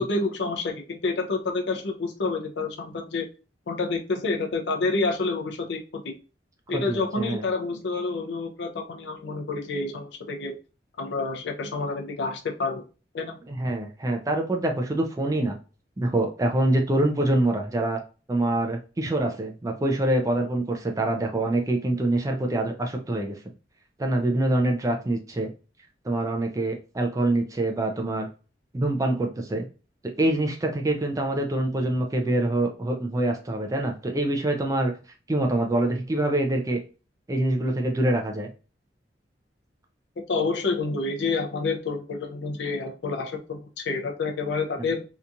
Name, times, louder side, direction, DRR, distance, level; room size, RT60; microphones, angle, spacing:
voice 1, 0.0-3.3 3.7-6.0 6.7-10.6 11.0-12.8 13.1-13.3 40.3-45.0, left 3 dB, 80° left, 3 dB, 0.5 m, -28 dB
voice 2, 6.7-7.4 13.5-15.6 16.0-18.0 18.3-23.4 24.0-25.5 26.0-28.3 28.7-29.7 30.2-34.9 35.3-36.8 37.3-38.5 44.8-44.9, right 1 dB, 20° right, 3 dB, 0.4 m, -25 dB
2.8 x 2.3 x 2.5 m, 0.34 s
head